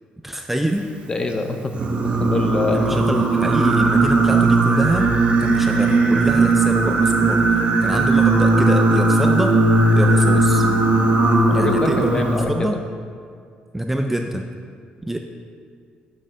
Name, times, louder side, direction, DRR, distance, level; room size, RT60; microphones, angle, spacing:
voice 1, 0.2-0.9 2.7-9.6 9.9-10.7 11.5-12.8 13.7-14.4 15.0-15.2, right 1 dB, 5° right, 4 dB, 0.4 m, -25 dB
voice 2, 1.1-3.0 11.5-12.8, left 2 dB, 30° left, 5 dB, 0.7 m, -25 dB
Singing, 1.7-12.4, right 2 dB, 45° right, 1.1 m, -17 dB
10.5 x 6.4 x 3.8 m, 2.1 s
cardioid pair, 120°, 3 cm